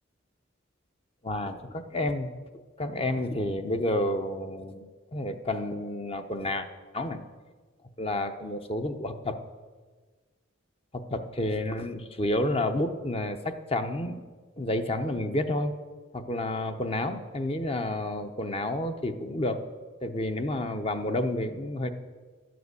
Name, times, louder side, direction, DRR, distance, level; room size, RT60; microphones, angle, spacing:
voice 1, 1.2-2.3 2.8-6.7 6.9-7.2 8.0-9.4 10.9-14.2 14.6-15.7 16.1-19.6 20.0-21.9, left 1 dB, 30° left, 7 dB, 0.7 m, -30 dB
12.0 x 7.8 x 8.1 m, 1.4 s
head